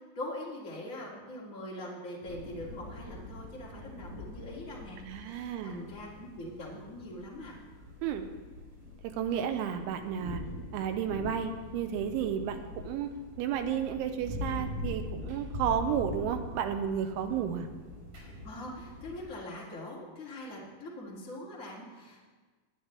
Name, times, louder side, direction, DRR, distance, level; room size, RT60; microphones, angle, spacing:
voice 1, 0.1-7.6 18.4-22.2, left 1 dB, 35° left, -5 dB, 1.3 m, -42 dB
sound 1, 2.2-19.2, left 1 dB, 40° right, 5.3 m, -43 dB
voice 2, 5.0-5.8 8.0-8.3 9.0-10.4 10.7-13.1 13.4-17.7, right 8 dB, 85° right, 7 dB, 3.1 m, -32 dB
21.0 x 9.0 x 3.3 m, 1.4 s
omnidirectional pair, 5.7 m